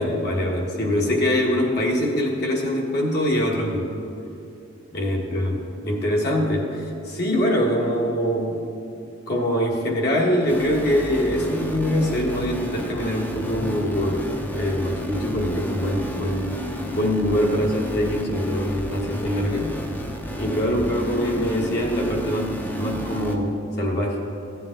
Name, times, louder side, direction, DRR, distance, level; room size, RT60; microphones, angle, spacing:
voice 1, 0.0-3.9 4.9-8.6 9.3-19.7 20.4-24.2, equal, 50° left, -1 dB, 1.5 m, -23 dB
sound 1, 10.5-23.4, equal, 10° left, 0.6 m, -32 dB
14.0 x 9.1 x 3.8 m, 2.8 s
head